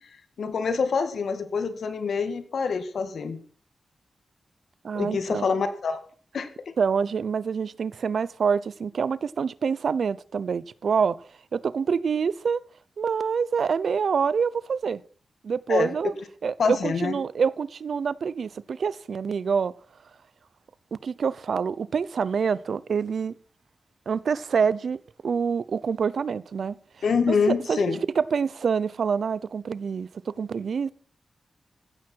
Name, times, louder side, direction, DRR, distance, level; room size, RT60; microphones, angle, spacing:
voice 1, 0.4-3.4 4.9-6.0 6.3-6.7 15.7-16.1 16.6-17.2 27.0-28.0, left 5 dB, 80° left, 2.0 m, -26 dB
voice 2, 4.8-5.5 6.8-11.2 11.5-12.6 13.0-15.0 15.4-16.1 16.4-19.7 20.9-23.3 24.1-26.7 27.3-27.8 28.2-30.9, right 6 dB, 70° right, 0.6 m, -26 dB
15.5 x 12.5 x 4.6 m
wide cardioid pair, 120°, 0 cm